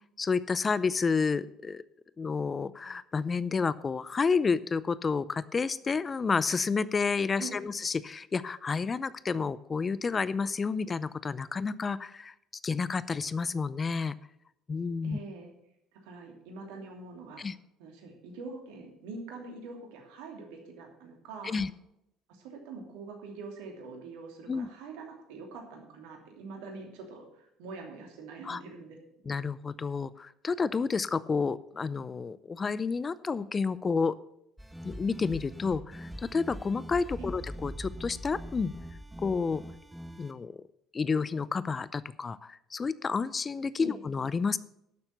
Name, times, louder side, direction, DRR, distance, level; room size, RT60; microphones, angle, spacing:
voice 1, 0.2-1.8 2.2-12.3 12.6-14.2 14.7-15.2 17.4-17.5 21.4-21.7 24.5-24.7 28.4-28.6 29.3-34.2 34.8-38.7 39.2-39.6 40.2-40.5 40.9-44.6, left 5 dB, 30° left, 17 dB, 0.6 m, -30 dB
voice 2, 15.0-15.5 15.9-17.4 17.8-21.6 22.3-29.2 37.2-37.3 43.8-44.0, right 4 dB, 75° right, 2 dB, 2.9 m, -44 dB
sound 1, 34.6-40.3, equal, 5° right, 1.7 m, -42 dB
11.5 x 7.1 x 6.6 m, 0.79 s
hypercardioid pair, 65°, 0 cm